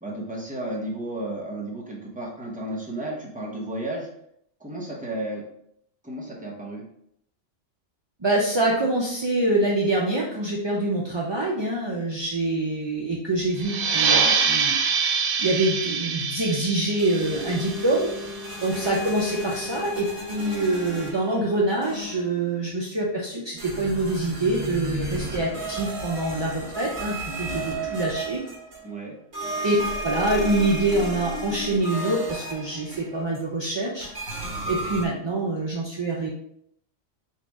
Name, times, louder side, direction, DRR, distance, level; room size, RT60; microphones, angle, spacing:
voice 1, 0.0-4.1 4.6-5.4 6.0-6.8 28.8-29.1, right 1 dB, 10° right, -3 dB, 0.8 m, -33 dB
voice 2, 8.2-14.8 15.4-18.1 18.6-28.4 29.6-29.8 30.0-34.1 34.7-36.3, right 2 dB, 35° right, -4 dB, 0.4 m, -25 dB
sound 1, 13.6-18.8, right 5 dB, 70° right, 0.9 m, -25 dB
sound 2, 17.0-21.5 21.8-22.4 23.6-28.9 29.3-33.4 34.0-35.1, right 1 dB, 55° right, 1.4 m, -33 dB
4.2 x 2.5 x 4.6 m, 0.72 s
omnidirectional pair, 1.2 m